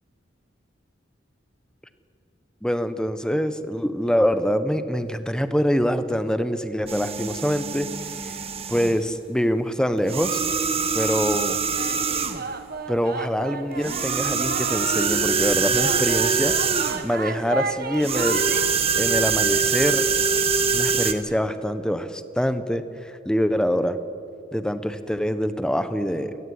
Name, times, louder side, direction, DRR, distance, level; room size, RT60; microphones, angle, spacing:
voice 1, 2.6-7.9 8.7-10.4 10.9-11.6 12.9-16.5 17.0-18.4 18.9-20.1 20.7-24.0 24.5-26.4, equal, 5° left, 11 dB, 1.1 m, -25 dB
sound 1, 6.9-9.0 10.0-12.5 13.8-17.1 18.0-21.1, right 5 dB, 30° right, 1.4 m, -24 dB
sound 2, 11.8-18.6, right 4 dB, 50° right, 1.6 m, -33 dB
28.0 x 18.0 x 9.7 m, 2.6 s
head